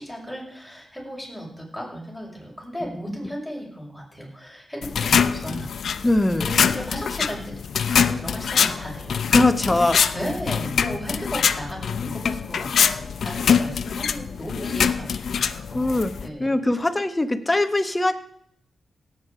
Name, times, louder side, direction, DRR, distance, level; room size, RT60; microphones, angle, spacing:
voice 1, 0.0-5.7 6.4-9.4 10.1-16.8, equal, ahead, -3 dB, 6.1 m, -35 dB
voice 2, 2.8-3.2 6.0-6.4 9.3-10.0 15.7-16.1 16.4-18.1, left 2 dB, 15° left, 9 dB, 1.2 m, -21 dB
sound 1, 4.8-16.3, left 7 dB, 75° left, 0.7 m, -24 dB
17.0 x 8.5 x 5.0 m, 0.69 s
cardioid pair, 85°, 0 cm